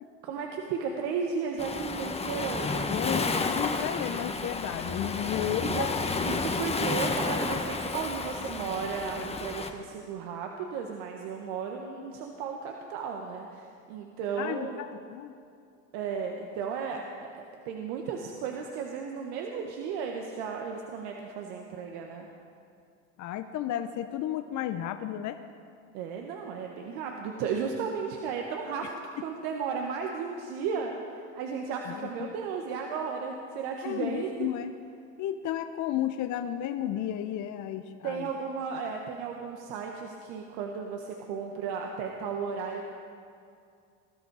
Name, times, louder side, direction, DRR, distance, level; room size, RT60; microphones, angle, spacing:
voice 1, 0.2-2.9 5.6-5.9 6.2-14.8 15.9-22.3 25.9-28.9 29.2-34.5 38.0-42.8, right 6 dB, 70° right, 2 dB, 1.5 m, -34 dB
Waves surf, 1.6-9.7, left 3 dB, 15° left, 1.1 m, -31 dB
voice 2, 2.9-6.0 14.4-14.7 15.1-15.3 23.2-25.4 31.9-32.3 33.8-34.7 35.2-38.3, left 11 dB, 50° left, 8 dB, 0.8 m, -33 dB
20.5 x 12.5 x 4.8 m, 2.4 s
supercardioid pair, 95°, 38 cm